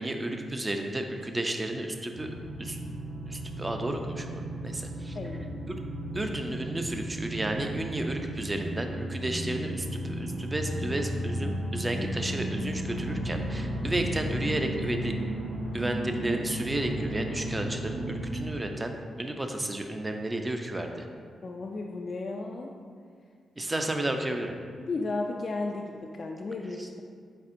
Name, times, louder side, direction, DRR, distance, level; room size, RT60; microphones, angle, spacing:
voice 1, 0.0-2.8 3.3-5.2 5.7-5.8 6.1-15.1 15.7-21.1 23.6-24.5, right 1 dB, 25° right, 4 dB, 0.5 m, -32 dB
sound 1, 2.1-18.4, right 1 dB, 70° right, 1.2 m, -34 dB
voice 2, 21.4-22.7 24.8-27.0, left 3 dB, 55° left, 1 dB, 0.3 m, -34 dB
4.2 x 4.1 x 2.5 m, 2.1 s
supercardioid pair, 50°, 0 cm